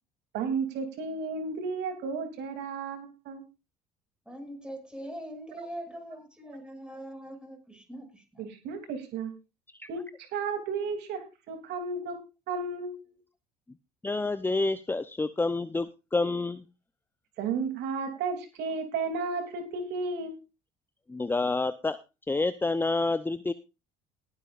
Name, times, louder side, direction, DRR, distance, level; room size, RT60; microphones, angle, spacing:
voice 1, 0.3-3.4 5.6-5.7 8.4-9.3 9.9-10.0 10.3-11.2 11.5-12.2 12.5-13.0 17.4-20.4, right 4 dB, 60° right, 3.0 m, -33 dB
voice 2, 4.3-8.4, equal, 5° right, 6.2 m, -42 dB
voice 3, 14.0-16.6 21.1-22.0 22.3-23.5, left 3 dB, 10° left, 0.7 m, -28 dB
20.0 x 9.8 x 2.5 m
hypercardioid pair, 65°, 19 cm